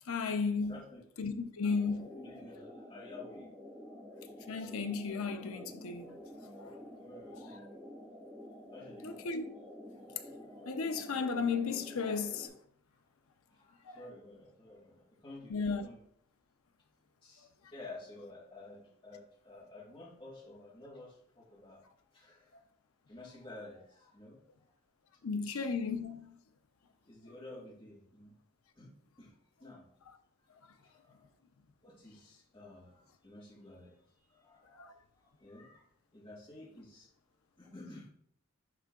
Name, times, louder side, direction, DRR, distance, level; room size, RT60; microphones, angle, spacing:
voice 1, 0.1-0.8 1.2-2.1 4.5-6.1 6.6-6.7 9.0-9.5 10.6-12.5 13.9-14.0 15.5-15.8 25.2-26.3 34.8-34.9, left 5 dB, 85° left, 0.6 m, -34 dB
voice 2, 0.7-1.1 2.0-3.5 3.8-3.9 6.9-7.8 8.7-9.2 13.5-16.0 17.2-21.8 22.1-22.5 23.1-24.4 25.3-25.7 27.1-28.4 28.7-28.9 29.2-29.3 29.6-29.8 30.8-31.2 31.8-33.9 34.3-34.9 35.1-35.8 36.1-37.1 37.6-38.1, left 2 dB, 25° left, 1.6 m, -52 dB
sound 1, 1.6-12.5, left 1 dB, 10° right, 1.5 m, -50 dB
11.0 x 3.7 x 2.4 m
head